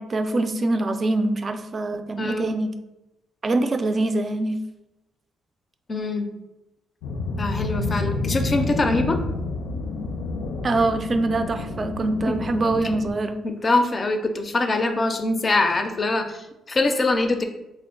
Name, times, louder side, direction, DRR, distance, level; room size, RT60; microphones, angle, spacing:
voice 1, 0.0-2.7 3.4-4.6 10.6-13.4, right 2 dB, 35° right, 8 dB, 0.4 m, -24 dB
voice 2, 2.2-2.5 5.9-6.3 7.4-9.2 12.3-12.4 12.9-13.0 13.4-17.4, left 2 dB, 35° left, 6 dB, 0.4 m, -23 dB
sound 1, 7.0-13.1, left 3 dB, 90° left, 0.4 m, -29 dB
3.3 x 2.1 x 3.7 m, 0.94 s
cardioid pair, 90°, 0 cm